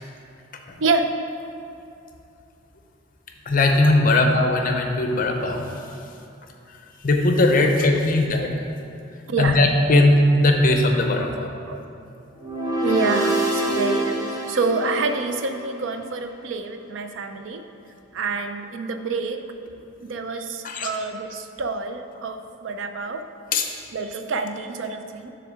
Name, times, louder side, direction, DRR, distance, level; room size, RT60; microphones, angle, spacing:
voice 1, 3.5-5.7 7.0-8.5 9.4-11.5 20.6-20.9 23.5-23.7, left 2 dB, 45° left, 3 dB, 0.6 m, -19 dB
voice 2, 9.3-9.6 9.9-10.0 11.2-11.3 11.7-11.8 12.8-14.2 14.5-17.6 18.1-19.4 20.0-23.2 23.9-25.3, right 4 dB, 65° right, 8 dB, 0.4 m, -27 dB
sound 1, 12.4-15.6, right 1 dB, 20° right, 0.9 m, -26 dB
7.1 x 3.4 x 6.3 m, 2.7 s
head